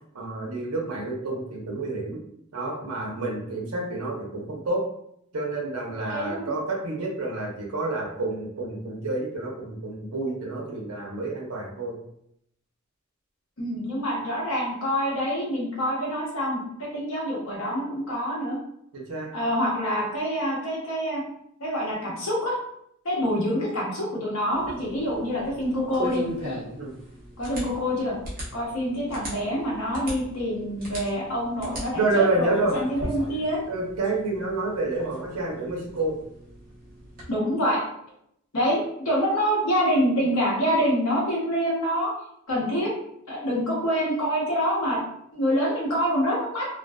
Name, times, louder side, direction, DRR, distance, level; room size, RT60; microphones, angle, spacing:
voice 1, 0.1-2.2 2.5-4.8 5.3-11.9 18.9-19.3 26.8-26.9 31.9-32.7 33.7-36.1, right 2 dB, 80° right, -2 dB, 0.7 m, -28 dB
voice 2, 6.1-6.5 13.6-18.6 19.3-21.2 21.6-22.5 23.0-26.2 27.4-28.1 28.5-33.6 37.3-37.8 38.5-42.1 42.5-42.9 43.3-45.0 45.3-46.7, equal, 70° left, -4 dB, 0.9 m, -26 dB
sound 1, 24.5-37.3, equal, 40° right, 0.9 m, -39 dB
2.5 x 2.2 x 2.2 m, 0.74 s
head